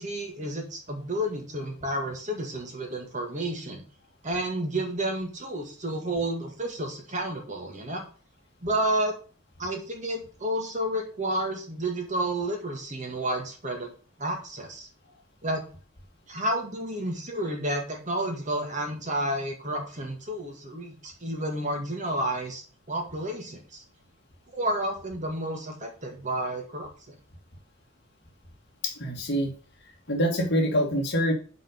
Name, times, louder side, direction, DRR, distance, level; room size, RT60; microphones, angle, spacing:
voice 1, 0.0-3.8 4.2-8.0 8.6-9.1 9.6-13.9 14.2-14.9 15.4-15.6 16.3-23.8 24.5-27.1, right 1 dB, 35° right, 3 dB, 1.9 m, -31 dB
voice 2, 28.8-29.5 30.1-31.3, equal, 55° left, 2 dB, 2.0 m, -25 dB
5.9 x 5.2 x 6.6 m, 0.39 s
head